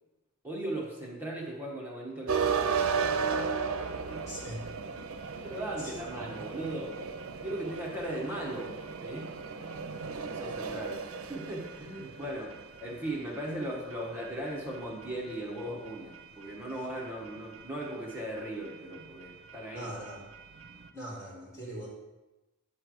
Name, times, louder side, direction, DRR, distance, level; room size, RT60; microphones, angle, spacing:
voice 1, 0.4-3.5 3.9-4.3 5.3-7.0 7.4-9.3 10.2-11.0 11.3-19.9, right 1 dB, 10° right, -4 dB, 1.1 m, -38 dB
sound 1, 2.3-20.9, right 5 dB, 70° right, 0.6 m, -37 dB
voice 2, 4.3-4.6 5.2-5.4 5.8-5.9 6.2-6.3 19.7-20.3 20.9-21.9, equal, 15° left, -8 dB, 2.2 m, -41 dB
9.5 x 3.3 x 6.2 m, 1.1 s
head